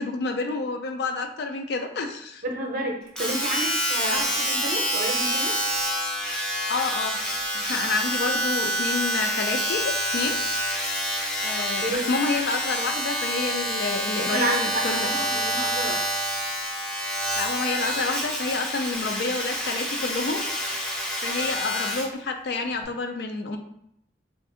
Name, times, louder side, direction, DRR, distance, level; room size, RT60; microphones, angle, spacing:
voice 1, 0.0-2.4 4.1-4.3 6.7-7.2 7.5-10.4 11.4-15.3 17.4-20.4 21.2-23.6, left 3 dB, 60° left, 5 dB, 0.4 m, -29 dB
voice 2, 2.4-5.6 11.6-12.1 14.2-16.0, right 1 dB, 50° right, 0 dB, 0.6 m, -30 dB
Domestic sounds home sounds, 3.2-22.1 22.8-22.9, equal, 5° left, 0.5 m, -27 dB
2.5 x 2.4 x 3.7 m, 0.76 s
head